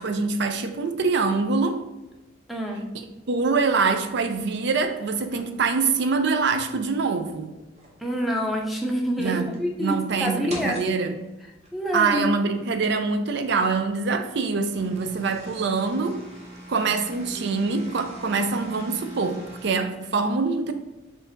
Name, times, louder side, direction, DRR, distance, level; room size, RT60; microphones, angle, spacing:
voice 1, 0.0-1.8 3.3-7.5 9.2-9.5 9.8-11.1 11.9-16.2 16.7-20.7, right 4 dB, 65° right, 8 dB, 0.5 m, -24 dB
voice 2, 2.5-2.9 8.0-10.8 11.7-12.3 17.3-17.6, equal, ahead, 0 dB, 0.6 m, -27 dB
sound 1, 3.5-3.8 5.3-6.5 6.9-7.0 7.6-8.1 8.4-9.0 9.5-9.6 10.5-10.9 11.6-11.8 13.3-13.4 14.5-19.7, right 1 dB, 35° right, 1.0 m, -42 dB
4.4 x 2.6 x 4.5 m, 1.0 s
head